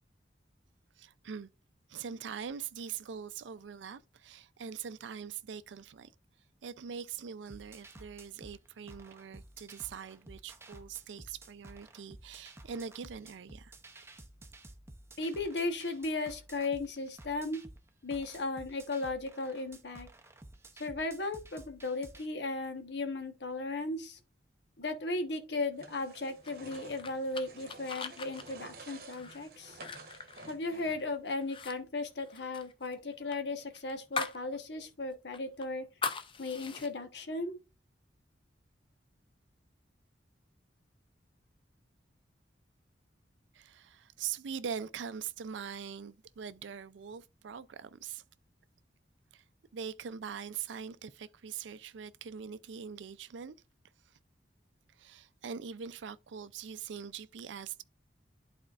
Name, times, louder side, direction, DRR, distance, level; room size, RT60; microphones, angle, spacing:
voice 1, 1.0-1.5 1.9-6.1 6.6-13.7 43.5-48.2 49.3-49.4 49.7-53.6 54.1-54.2 55.0-57.8, right 7 dB, 80° right, 0.4 m, -42 dB
sound 1, 7.5-22.3, right 2 dB, 15° right, 0.6 m, -53 dB
voice 2, 15.2-17.6 18.0-20.1 20.8-24.2 24.8-29.8 30.5-35.9 36.4-37.6, left 2 dB, 65° left, 1.1 m, -36 dB
sound 2, 25.7-31.2, right 3 dB, 55° right, 1.0 m, -52 dB
sound 3, 26.4-31.1 31.4-31.8 32.0-34.5 34.8-34.9 35.3-36.9, left 5 dB, 30° left, 0.5 m, -40 dB
11.0 x 4.3 x 2.4 m
head